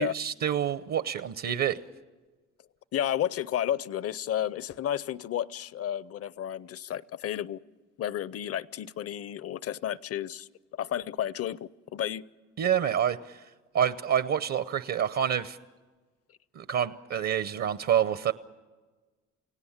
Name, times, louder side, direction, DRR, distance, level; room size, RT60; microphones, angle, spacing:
voice 1, 0.0-1.8 12.6-13.4 13.7-15.6 16.5-18.3, right 9 dB, 60° right, 14 dB, 0.8 m, -27 dB
voice 2, 2.9-7.6 8.0-11.6 11.9-12.2, left 11 dB, 50° left, 20 dB, 0.6 m, -32 dB
29.0 x 17.5 x 7.3 m, 1.3 s
cardioid pair, 90°, 30 cm